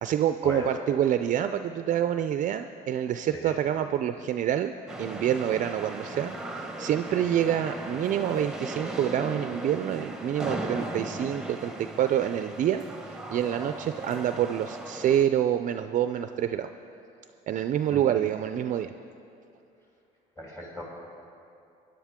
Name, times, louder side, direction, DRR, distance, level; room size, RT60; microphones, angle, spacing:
voice 1, 0.0-11.7 12.0-16.7 17.5-18.9, right 10 dB, 50° right, 9 dB, 0.4 m, -27 dB
sound 1, 4.9-15.2, right 1 dB, 5° right, 1.0 m, -37 dB
voice 2, 20.4-20.8, left 1 dB, 15° left, -4 dB, 3.0 m, -36 dB
19.5 x 10.5 x 3.6 m, 2.6 s
cardioid pair, 110°, 17 cm